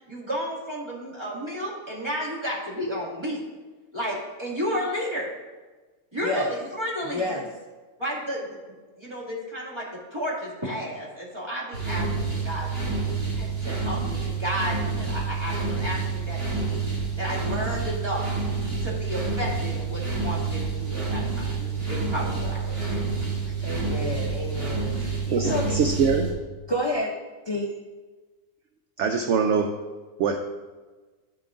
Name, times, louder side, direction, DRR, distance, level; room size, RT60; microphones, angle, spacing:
voice 1, 0.1-3.4 3.9-5.3 6.1-6.5 6.8-7.4 8.0-9.9 10.1-12.9 13.3-16.8 17.2-18.2 18.8-23.0 23.5-23.7, equal, 20° right, -6 dB, 2.3 m, -32 dB
voice 2, 7.1-7.5 23.6-25.8 26.7-27.1 27.5-27.7, left 2 dB, 35° left, 0 dB, 0.4 m, -29 dB
sound 1, 11.7-26.3, right 4 dB, 80° right, 3.2 m, -28 dB
voice 3, 25.3-26.4 29.0-29.8 30.2-30.4, right 5 dB, 65° right, 5 dB, 0.8 m, -23 dB
12.0 x 6.9 x 2.6 m, 1.3 s
omnidirectional pair, 1.5 m